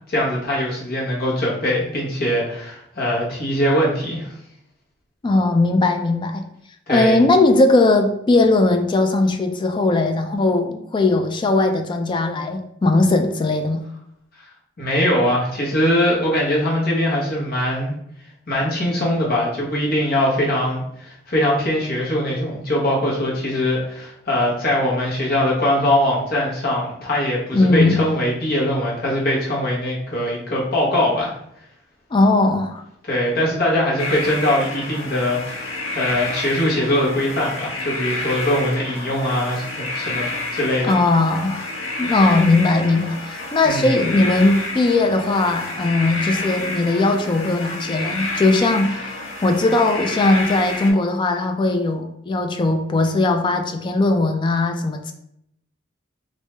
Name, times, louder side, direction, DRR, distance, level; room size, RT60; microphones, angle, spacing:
voice 1, 0.1-4.3 6.9-7.2 14.8-17.9 18.5-31.3 33.1-41.0 43.6-43.9, left 1 dB, 50° left, -4 dB, 1.1 m, -21 dB
voice 2, 5.2-6.4 6.9-13.9 27.5-28.0 32.1-32.8 40.8-41.7 42.0-49.2 49.4-55.1, left 2 dB, 25° left, 5 dB, 0.3 m, -18 dB
sound 1, 34.0-50.9, left 2 dB, 80° left, 0.7 m, -29 dB
3.1 x 2.6 x 3.2 m, 0.76 s
head